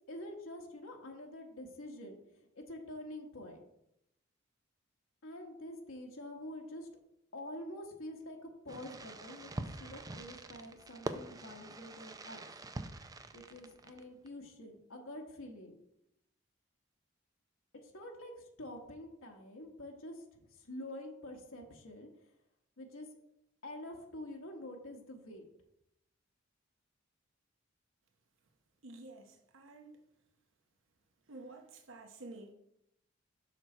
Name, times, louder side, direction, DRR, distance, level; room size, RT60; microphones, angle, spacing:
voice 1, 0.1-3.6 5.2-6.9 7.3-12.5 13.3-15.8 17.8-22.1 22.8-23.1 23.6-25.5, left 1 dB, 90° left, 1.3 m, -47 dB
Fireworks, 8.7-14.3, right 2 dB, 20° right, 0.4 m, -45 dB
voice 2, 28.8-30.0 31.3-32.5, right 2 dB, 70° right, 0.9 m, -50 dB
6.6 x 6.1 x 4.4 m
head